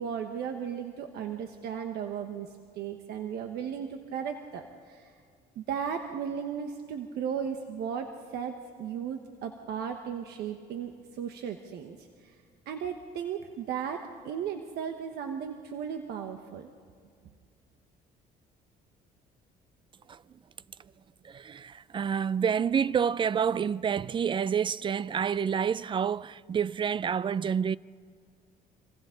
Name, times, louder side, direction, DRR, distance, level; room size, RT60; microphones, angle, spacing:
voice 1, 0.0-5.1 5.6-12.3 12.7-16.7, right 7 dB, 75° right, 1.3 m, -36 dB
voice 2, 21.2-27.8, right 7 dB, 30° right, 0.4 m, -28 dB
26.0 x 26.0 x 3.9 m
cardioid pair, 110°, 17 cm